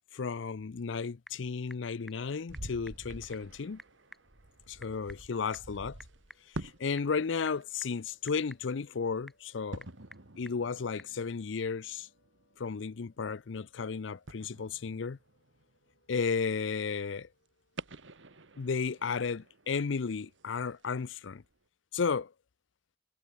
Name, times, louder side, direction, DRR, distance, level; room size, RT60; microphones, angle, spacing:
voice 1, 0.1-3.8 4.7-6.0 6.6-9.9 10.4-12.1 12.6-15.2 16.1-17.3 18.6-21.4 21.9-22.3, left 5 dB, 80° left, 0.5 m, -33 dB
Typing / Telephone, 0.7-11.2, equal, ahead, 1.1 m, -57 dB
sound 1, 1.9-19.2, left 2 dB, 60° left, 7.0 m, -75 dB
sound 2, 2.5-6.9 7.2-8.2 9.7-13.8 14.3-16.2 16.6-16.7 17.8-21.0 21.5-21.6, right 2 dB, 80° right, 2.0 m, -48 dB
head